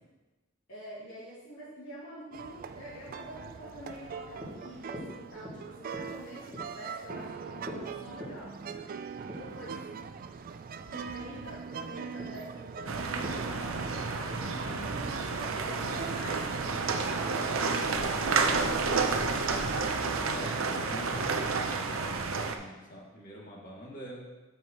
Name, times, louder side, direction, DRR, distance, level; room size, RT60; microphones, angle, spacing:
voice 1, 0.7-8.5 9.2-9.8 10.8-15.0 15.5-18.5, equal, 80° left, -12 dB, 2.9 m, -47 dB
sound 1, 2.3-17.3, right 6 dB, 45° right, 0.4 m, -42 dB
sound 2, 4.3-18.6, equal, 20° right, 2.1 m, -47 dB
sound 3, 12.9-22.6, right 4 dB, 80° right, 0.7 m, -30 dB
voice 2, 20.3-24.3, equal, 45° left, -3 dB, 2.0 m, -46 dB
11.0 x 6.3 x 3.0 m, 1.2 s
head